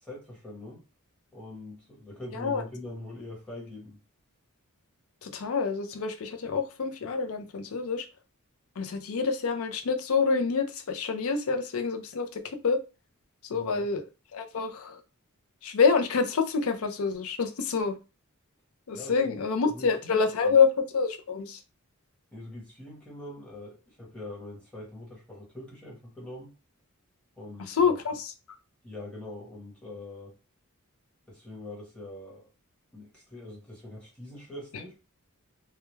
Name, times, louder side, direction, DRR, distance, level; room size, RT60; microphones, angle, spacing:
voice 1, 0.0-0.8 1.3-4.0 13.5-13.9 18.9-19.4 19.7-20.6 22.3-26.5 27.4-28.0 28.8-30.4 31.3-32.5 32.9-34.9, left 1 dB, 5° left, 0.9 m, -43 dB
voice 2, 2.3-2.6 5.2-8.1 8.8-12.8 13.4-14.0 14.3-15.0 15.6-18.0 18.9-21.6 27.6-28.3, left 5 dB, 70° left, 0.4 m, -27 dB
2.2 x 2.2 x 3.0 m
head